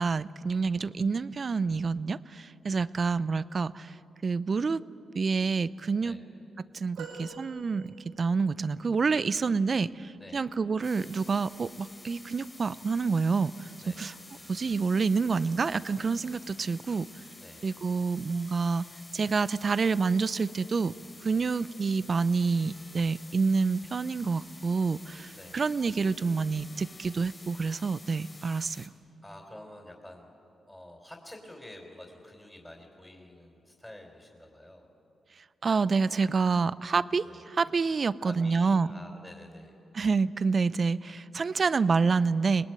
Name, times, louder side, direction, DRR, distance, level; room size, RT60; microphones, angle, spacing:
voice 1, 0.0-3.9 4.2-4.8 5.1-6.1 6.7-13.7 14.0-14.1 14.5-17.1 17.6-18.8 19.1-20.9 21.2-28.9 35.6-38.9 39.9-42.7, right 4 dB, 50° right, 18 dB, 0.6 m, -28 dB
sound 1, 7.0-8.4 9.1-9.2, right 4 dB, 90° right, 4.9 m, -45 dB
voice 2, 10.2-10.5 13.8-14.0 17.4-17.7 21.3-21.5 25.3-25.6 29.2-30.3 30.6-34.9 37.3-37.4 38.2-39.7, left 1 dB, 10° left, 1 dB, 4.2 m, -49 dB
sound 2, 10.8-28.9, left 2 dB, 35° left, 3.5 m, -50 dB
23.5 x 19.0 x 9.3 m, 2.8 s
supercardioid pair, 50°, 0 cm